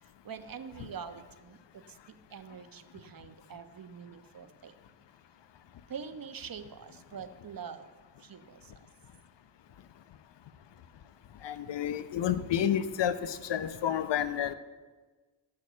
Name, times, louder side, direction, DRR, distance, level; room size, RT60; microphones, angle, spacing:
voice 1, 0.0-4.7 5.9-7.9 8.2-8.8 11.6-11.8, right 7 dB, 45° right, 10 dB, 1.1 m, -45 dB
voice 2, 11.4-14.5, left 9 dB, 65° left, 13 dB, 0.9 m, -30 dB
13.5 x 6.5 x 8.4 m, 1.3 s
supercardioid pair, 50°, 47 cm